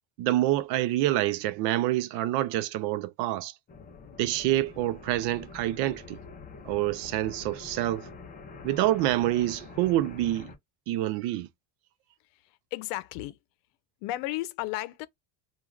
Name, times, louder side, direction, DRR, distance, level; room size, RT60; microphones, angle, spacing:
voice 1, 0.2-3.5 4.2-6.2 6.7-8.1 8.6-10.5 10.9-11.5, right 14 dB, 65° right, 0.5 m, -27 dB
sound 1, 3.7-10.6, left 4 dB, 20° left, 0.6 m, -46 dB
voice 2, 12.3-13.4 14.0-15.1, left 16 dB, 85° left, 0.7 m, -34 dB
2.4 x 2.4 x 3.1 m
cardioid pair, 145°, 45 cm